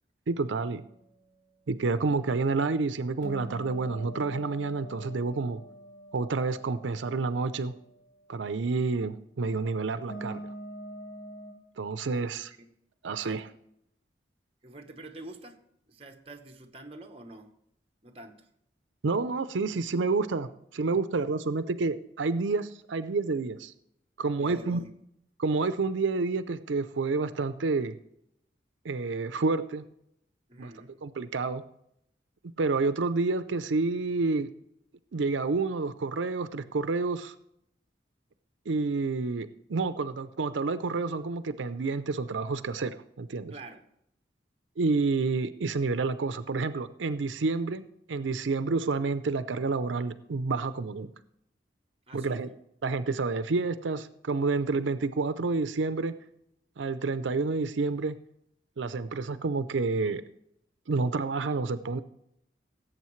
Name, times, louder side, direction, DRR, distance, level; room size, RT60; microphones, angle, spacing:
voice 1, 0.3-0.8 1.7-5.6 6.1-7.7 8.3-10.5 11.8-12.5 13.0-13.5 19.0-23.7 24.2-24.8 25.4-28.0 28.8-29.8 30.6-30.7 31.0-31.6 32.6-34.5 35.1-37.3 38.7-43.5 44.8-47.8 48.1-51.1 52.1-52.5 52.8-56.1 56.8-58.2 58.8-60.2 60.9-62.0, right 3 dB, 85° right, 12 dB, 0.5 m, -29 dB
sound 1, 3.2-7.4 10.1-11.5, equal, 80° left, 3.8 m, -44 dB
voice 2, 13.1-13.4 14.6-15.6 15.9-17.5 18.0-18.5 24.3-24.9 30.5-31.0 43.5-43.9 52.1-52.4, right 2 dB, 30° right, 5 dB, 1.0 m, -47 dB
17.0 x 7.9 x 3.1 m, 0.75 s
head